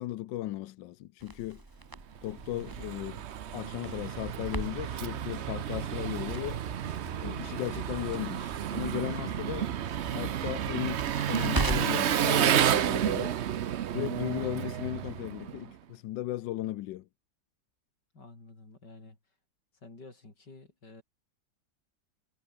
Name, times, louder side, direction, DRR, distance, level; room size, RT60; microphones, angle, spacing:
voice 1, 0.0-1.6 2.2-3.2 3.5-6.6 7.2-9.7 10.1-13.4 13.9-17.1, left 15 dB, 85° left, 1.4 m, -36 dB
Crackle, 1.2-12.1, right 2 dB, 15° right, 1.5 m, -41 dB
Engine, 2.2-15.7, right 10 dB, 60° right, 0.7 m, -31 dB
sound 1, 3.8-11.8, right 5 dB, 30° right, 1.2 m, -45 dB
voice 2, 18.1-19.2 19.8-21.0, left 3 dB, 70° left, 6.0 m, -50 dB
omnidirectional pair, 1.9 m